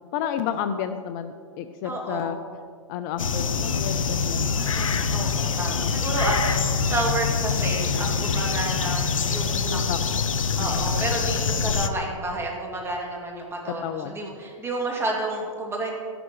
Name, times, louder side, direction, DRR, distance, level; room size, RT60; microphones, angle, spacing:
voice 1, 0.1-2.4 2.9-4.5 5.6-5.9 9.7-10.0 10.6-10.9 13.8-14.2, left 9 dB, 40° left, 9 dB, 0.5 m, -31 dB
voice 2, 1.8-2.4 4.6-10.2 10.6-16.0, right 2 dB, 15° right, -1 dB, 2.4 m, -31 dB
sound 1, 3.2-11.9, left 5 dB, 85° left, 0.7 m, -25 dB
13.0 x 11.0 x 3.2 m, 2.1 s
hypercardioid pair, 115°, 17 cm